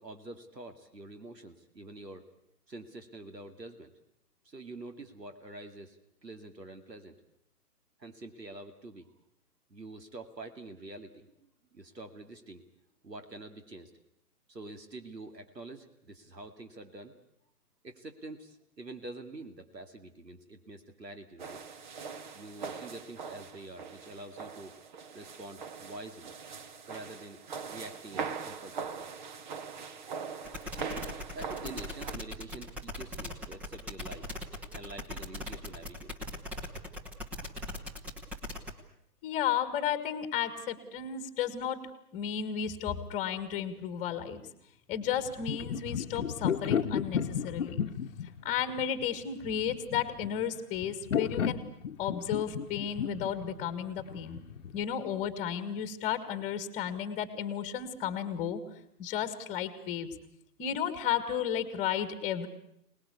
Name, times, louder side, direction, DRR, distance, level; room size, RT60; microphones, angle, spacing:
voice 1, 0.0-2.3 2.7-3.9 4.4-7.2 8.0-9.1 9.7-12.6 13.0-13.9 14.5-17.1 17.8-21.6 22.3-24.7 25.1-26.3 26.8-27.4 27.7-29.1 31.3-34.3 34.7-36.1, right 2 dB, 85° right, 7 dB, 2.5 m, -46 dB
sound 1, 21.4-32.1, right 6 dB, 30° right, 1.1 m, -41 dB
sound 2, 30.4-38.7, left 1 dB, 5° right, 0.8 m, -40 dB
voice 2, 39.2-41.8 42.1-44.4 44.9-47.8 48.4-51.6 52.0-54.4 54.7-58.6 59.0-60.1 60.6-62.5, left 9 dB, 15° left, 13 dB, 1.6 m, -33 dB
sound 3, 45.1-54.8, left 8 dB, 50° left, 1.1 m, -34 dB
25.5 x 19.5 x 8.3 m, 0.75 s
figure-of-eight pair, 135°, 48 cm